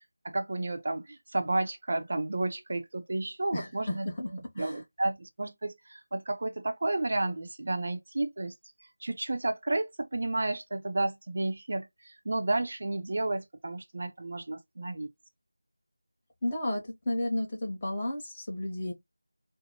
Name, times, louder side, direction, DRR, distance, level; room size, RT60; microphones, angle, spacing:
voice 1, 0.2-4.1 4.6-8.5 9.0-15.1, right 2 dB, 45° right, 0.5 m, -32 dB
voice 2, 3.5-4.3 4.6-4.8 16.4-18.9, left 1 dB, 20° left, 0.9 m, -32 dB
3.9 x 2.0 x 2.9 m
figure-of-eight pair, 175°, 0 cm